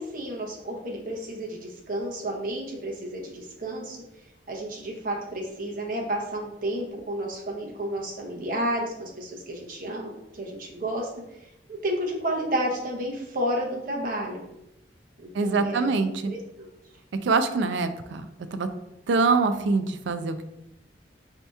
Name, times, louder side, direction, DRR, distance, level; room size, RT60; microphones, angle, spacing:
voice 1, 0.0-4.0 4.5-11.1 11.8-14.4 15.2-15.9 16.3-16.4, right 1 dB, 50° right, -1 dB, 0.9 m, -31 dB
voice 2, 15.3-16.3 17.2-18.2 18.5-18.7 19.1-20.4, right 4 dB, 75° right, 10 dB, 0.4 m, -24 dB
4.3 x 2.8 x 3.4 m, 0.87 s
head